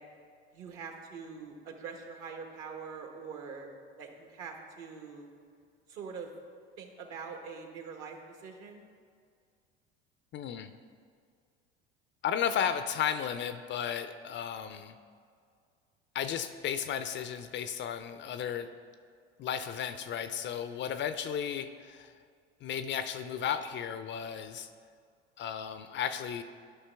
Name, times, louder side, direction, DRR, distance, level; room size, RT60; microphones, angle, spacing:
voice 1, 0.5-3.7 4.0-5.3 5.9-6.3 6.8-8.8, right 5 dB, 55° right, 3 dB, 1.3 m, -44 dB
voice 2, 10.3-10.7 12.2-14.9 16.1-18.7 19.4-22.1 22.6-24.7 25.4-26.4, left 8 dB, 35° left, 10 dB, 0.4 m, -34 dB
11.0 x 5.4 x 3.4 m, 2.2 s
hypercardioid pair, 80°, 31 cm